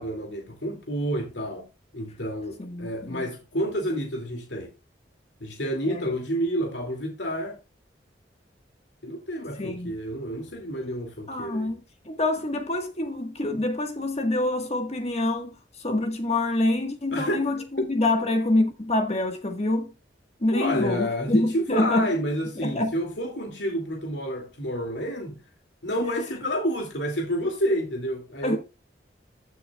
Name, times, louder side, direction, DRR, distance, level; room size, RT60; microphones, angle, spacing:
voice 1, 0.0-1.7 1.9-4.7 5.4-7.6 9.0-11.7 17.1-17.8 20.5-25.4 25.8-28.6, equal, 85° left, 2.4 m, -29 dB
voice 2, 2.6-3.3 5.9-6.0 9.6-9.9 11.3-19.9 20.4-22.1 22.6-22.9 28.4-28.6, left 2 dB, 35° left, 1.4 m, -26 dB
15.0 x 6.5 x 2.3 m
head